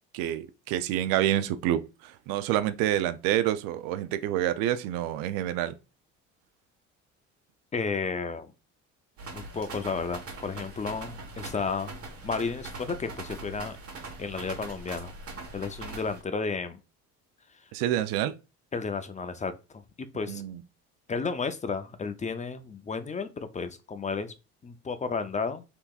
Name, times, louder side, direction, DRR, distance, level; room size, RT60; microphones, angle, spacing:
voice 1, 0.1-5.7 17.7-18.3 20.3-20.6, right 12 dB, 75° right, 0.5 m, -28 dB
voice 2, 7.7-8.5 9.3-11.9 12.2-13.8 14.2-15.1 15.5-16.8 18.7-19.8 20.1-20.4 21.1-24.3 24.6-25.6, left 4 dB, 20° left, 0.5 m, -32 dB
sound 1, 9.2-16.2, right 2 dB, 40° right, 1.3 m, -41 dB
3.4 x 3.0 x 2.3 m
hypercardioid pair, 70°, 35 cm